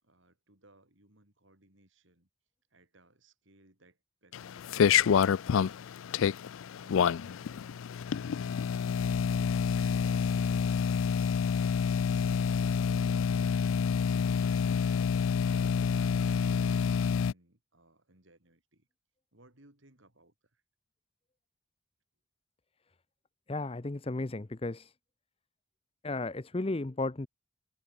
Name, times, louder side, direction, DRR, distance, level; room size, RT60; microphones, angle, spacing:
voice 1, 0.0-2.3 2.7-6.5 6.8-10.9 11.4-12.4 12.8-13.6 14.1-16.0 17.2-18.9 19.3-20.6, right 1 dB, 65° right, 4.4 m, -64 dB
sound 1, 4.3-17.3, left 7 dB, 70° left, 0.4 m, -28 dB
voice 2, 23.5-24.9 26.0-27.3, left 2 dB, 25° left, 0.6 m, -34 dB
head